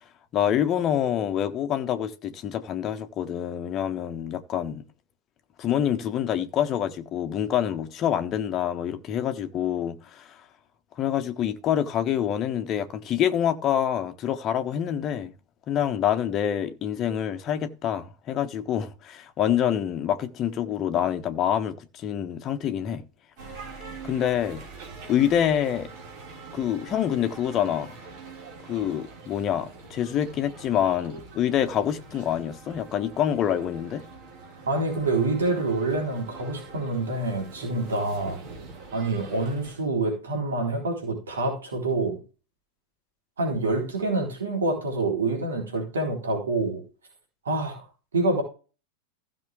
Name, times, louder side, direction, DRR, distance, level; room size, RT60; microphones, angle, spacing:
voice 1, 0.3-4.8 5.6-10.4 11.0-15.3 15.7-23.0 24.0-24.6 25.1-25.9 26.5-28.0 28.7-34.0, left 10 dB, 30° left, 1.3 m, -26 dB
sound 1, 23.4-39.8, right 4 dB, 45° right, 4.8 m, -44 dB
voice 2, 34.7-38.4 38.9-42.2 43.4-46.8 47.4-47.8 48.1-48.4, right 2 dB, 70° right, 3.8 m, -26 dB
15.5 x 6.4 x 3.5 m
figure-of-eight pair, 90°, 0 cm